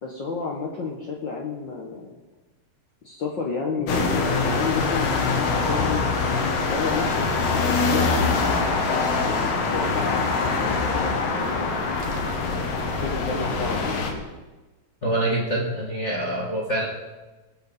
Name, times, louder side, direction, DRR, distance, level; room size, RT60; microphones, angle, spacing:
voice 1, 0.0-2.2 3.0-6.1 6.6-11.7 12.1-12.2 13.0-14.4, left 4 dB, 70° left, 0 dB, 1.1 m, -32 dB
sound 1, 3.9-14.1, left 4 dB, 90° left, 3.0 m, -24 dB
voice 2, 15.0-16.9, right 1 dB, 35° left, -3 dB, 1.3 m, -25 dB
22.0 x 7.7 x 4.2 m, 1.2 s
omnidirectional pair, 3.7 m